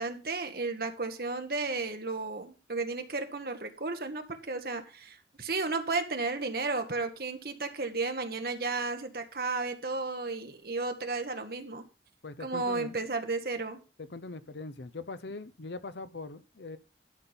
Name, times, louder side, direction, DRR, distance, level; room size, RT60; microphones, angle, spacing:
voice 1, 0.0-11.8 12.4-13.8, right 3 dB, 55° right, 1.6 m, -33 dB
voice 2, 12.2-13.0 14.0-16.8, left 3 dB, 80° left, 0.8 m, -41 dB
12.0 x 5.4 x 5.9 m
head